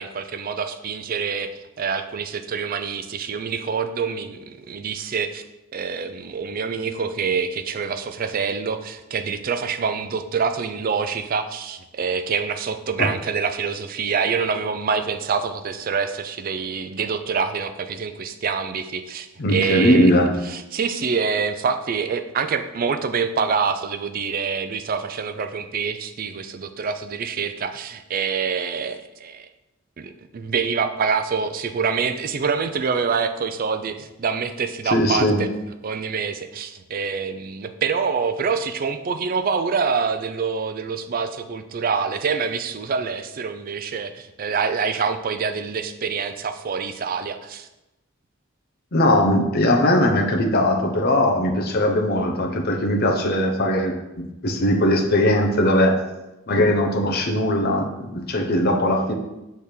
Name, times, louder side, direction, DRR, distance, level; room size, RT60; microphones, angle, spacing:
voice 1, 0.0-1.5 1.8-5.4 5.7-20.1 20.4-29.5 30.0-35.5 35.8-47.7, right 5 dB, 45° right, 9 dB, 0.4 m, -26 dB
voice 2, 19.4-20.3 34.9-35.4 48.9-54.0 54.4-56.0 56.5-59.1, left 1 dB, 50° left, 2 dB, 0.8 m, -19 dB
6.5 x 3.5 x 4.3 m, 0.97 s
head